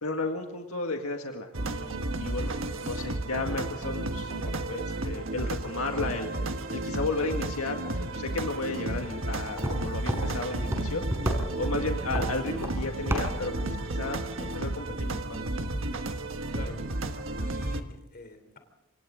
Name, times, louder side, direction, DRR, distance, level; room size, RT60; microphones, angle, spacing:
voice 1, 0.0-11.0 11.6-15.4, left 3 dB, 80° left, 3 dB, 1.9 m, -34 dB
sound 1, 1.5-17.8, right 2 dB, 60° right, 1.5 m, -33 dB
sound 2, 8.7-13.9, equal, 10° right, 4.4 m, -34 dB
voice 2, 16.5-17.1 17.4-18.6, left 2 dB, 45° left, 7 dB, 3.3 m, -45 dB
27.5 x 25.5 x 3.8 m, 0.89 s
head